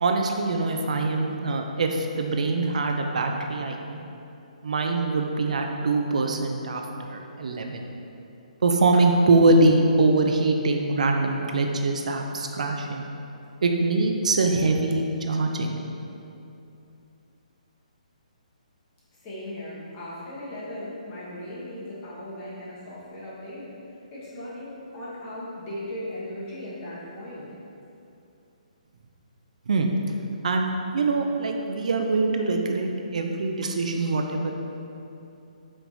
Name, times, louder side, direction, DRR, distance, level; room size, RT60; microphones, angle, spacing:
voice 1, 0.0-4.0 4.6-7.9 8.6-13.1 13.6-15.8 29.7-29.9 30.4-34.5, right 2 dB, 65° right, 3 dB, 0.3 m, -23 dB
voice 2, 19.1-27.5, left 1 dB, 25° left, -8 dB, 1.1 m, -37 dB
4.7 x 3.2 x 2.6 m, 2.8 s
figure-of-eight pair, 135°, 4 cm